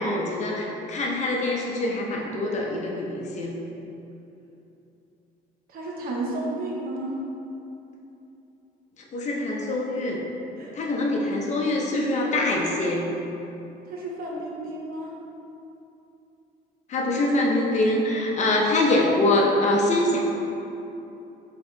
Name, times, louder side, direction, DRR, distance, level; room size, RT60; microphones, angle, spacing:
voice 1, 0.0-3.6 9.1-10.2 10.7-13.0 16.9-20.2, left 2 dB, 45° left, -1 dB, 0.7 m, -24 dB
voice 2, 5.7-7.2 10.6-10.9 13.9-15.1, right 2 dB, 60° right, -2 dB, 0.8 m, -32 dB
4.0 x 2.8 x 3.9 m, 2.9 s
cardioid pair, 110°, 17 cm